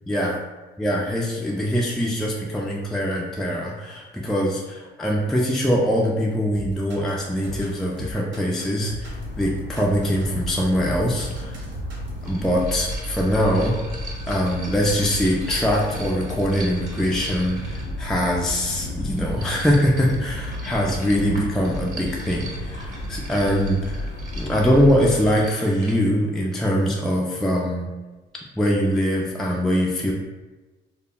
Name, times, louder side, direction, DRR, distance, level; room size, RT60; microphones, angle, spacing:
voice 1, 0.1-0.4 0.8-11.6 12.2-13.8 14.3-24.1 24.4-27.9 28.6-30.1, equal, ahead, -2 dB, 0.3 m, -23 dB
sound 1, 6.5-12.2, left 1 dB, 70° right, 0.7 m, -37 dB
sound 2, 9.0-25.4, left 1 dB, 65° left, 0.6 m, -33 dB
sound 3, 11.4-11.5 12.2-18.1 19.0-26.0, right 2 dB, 40° right, 0.9 m, -41 dB
2.1 x 2.0 x 3.7 m, 1.2 s
cardioid pair, 90°, 20 cm